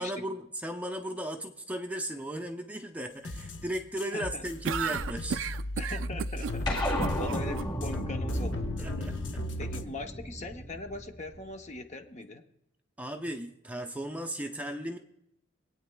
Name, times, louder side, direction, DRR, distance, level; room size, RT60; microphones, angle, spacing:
voice 1, 0.0-5.4 8.8-9.4 13.0-15.0, right 1 dB, 10° right, 5 dB, 0.6 m, -36 dB
sound 1, 3.2-9.8, left 1 dB, 65° left, 0.8 m, -36 dB
voice 2, 4.1-4.4 5.8-6.8 7.2-8.9 9.6-12.4, left 2 dB, 35° left, 6 dB, 0.7 m, -41 dB
sound 2, 4.6-7.6, right 7 dB, 80° right, 0.4 m, -33 dB
sound 3, 6.7-11.4, equal, 20° left, 3.0 m, -34 dB
26.0 x 8.7 x 2.2 m, 0.80 s
head